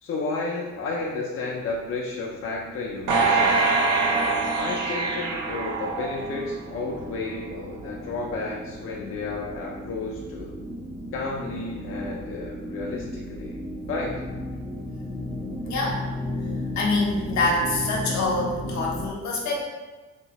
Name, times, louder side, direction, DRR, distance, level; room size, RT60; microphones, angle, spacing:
voice 1, 0.0-3.7 4.5-10.5 11.1-13.5 13.9-14.1, left 3 dB, 45° left, -3 dB, 0.5 m, -32 dB
sound 1, 0.8-19.1, left 1 dB, 10° right, 0.4 m, -36 dB
sound 2, 3.1-6.5 7.0-7.1, right 3 dB, 90° right, 0.6 m, -24 dB
voice 2, 15.6-16.0 16.7-19.6, left 2 dB, 65° left, -2 dB, 0.9 m, -25 dB
2.9 x 2.7 x 2.8 m, 1.3 s
cardioid pair, 90°, 30 cm